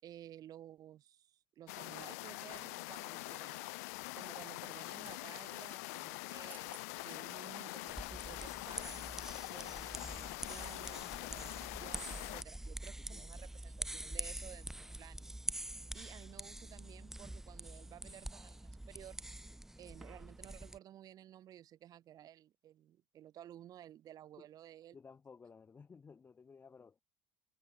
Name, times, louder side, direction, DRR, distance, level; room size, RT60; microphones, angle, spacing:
voice 1, 0.0-3.7 4.2-9.0 9.5-15.4 15.9-19.2 19.8-25.0, right 12 dB, 50° right, 5.7 m, -55 dB
sound 1, 1.7-12.4, left 27 dB, 75° left, 1.3 m, -44 dB
sound 2, 2.2-2.8 4.5-5.2 6.2-6.3 6.5-6.9 7.4-7.5, right 5 dB, 25° right, 1.5 m, -60 dB
sound 3, 7.9-20.8, right 1 dB, 5° right, 0.6 m, -45 dB
voice 2, 24.9-27.0, left 5 dB, 25° left, 2.5 m, -56 dB
supercardioid pair, 90°, 8 cm